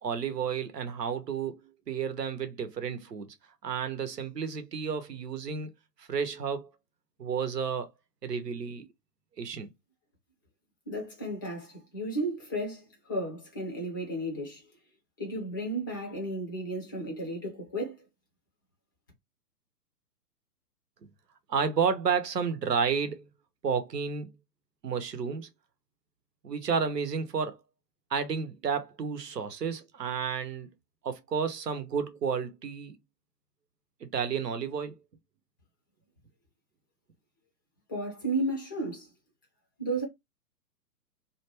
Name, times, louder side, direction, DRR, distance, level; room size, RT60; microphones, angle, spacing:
voice 1, 0.0-3.3 3.6-5.7 6.0-6.7 7.2-7.9 8.2-8.9 9.4-9.7 21.5-23.3 23.6-24.4 24.8-25.5 26.4-27.6 28.1-30.7 31.0-33.0 34.0-35.0, right 6 dB, 80° right, 0.8 m, -31 dB
voice 2, 10.9-14.7 15.2-18.0 37.9-39.1 39.8-40.0, right 1 dB, 15° left, 0.4 m, -33 dB
2.5 x 2.2 x 2.9 m
figure-of-eight pair, 120°, 48 cm